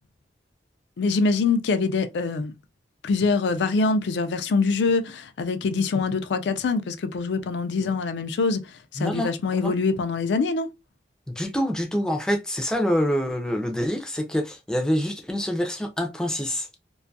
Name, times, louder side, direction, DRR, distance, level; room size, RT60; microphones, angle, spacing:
voice 1, 1.0-2.5 3.0-8.6 8.9-10.7, left 4 dB, 75° left, 0.4 m, -24 dB
voice 2, 9.0-9.3 9.6-9.7 11.3-16.7, equal, 5° left, 0.4 m, -26 dB
2.5 x 2.3 x 2.5 m
head